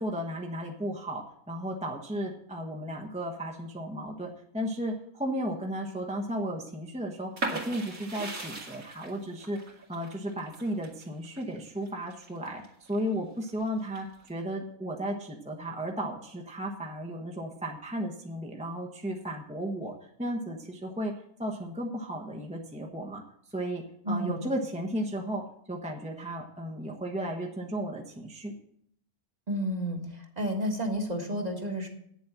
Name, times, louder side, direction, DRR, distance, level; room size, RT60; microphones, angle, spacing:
voice 1, 0.0-23.2 23.5-28.5, right 1 dB, 5° right, 0 dB, 1.0 m, -34 dB
sound 1, 7.4-13.0 13.4-14.3, right 2 dB, 70° right, 2.7 m, -38 dB
voice 2, 24.1-24.4 29.5-30.0 30.4-31.9, equal, 30° right, 2 dB, 1.6 m, -30 dB
9.5 x 7.3 x 7.3 m, 0.69 s
omnidirectional pair, 1.5 m